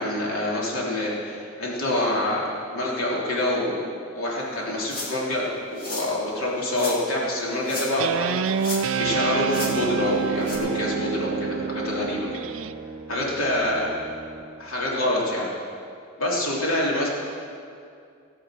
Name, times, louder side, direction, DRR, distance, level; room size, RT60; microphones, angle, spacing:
voice 1, 0.0-3.9 4.1-12.3 13.1-13.9 14.6-15.5 16.2-17.1, left 1 dB, 85° left, -4 dB, 3.2 m, -26 dB
sound 1, 4.8-5.3 5.8-6.1 6.7-7.0 7.6-8.1 8.4-9.0 9.5-9.7 10.4-10.6, left 2 dB, 45° left, 2.4 m, -34 dB
Guitar, 8.0-12.7, right 6 dB, 70° right, 0.4 m, -27 dB
Brass instrument, 8.9-14.7, right 3 dB, 30° right, 0.8 m, -39 dB
17.0 x 7.6 x 6.3 m, 2.4 s
head